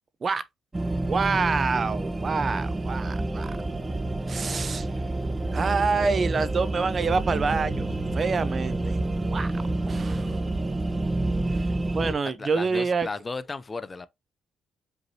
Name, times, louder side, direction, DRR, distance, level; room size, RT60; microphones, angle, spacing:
sound 1, 0.7-12.1, right 2 dB, 20° right, 0.9 m, -28 dB
voice 1, 1.0-3.5 4.3-4.9 5.5-9.0 9.3-9.5 9.9-10.4 11.5-11.7 11.9-13.1, right 4 dB, 40° right, 0.5 m, -27 dB
voice 2, 12.2-14.1, left 3 dB, 30° left, 0.4 m, -35 dB
5.2 x 3.0 x 2.7 m
cardioid pair, 90°, 0 cm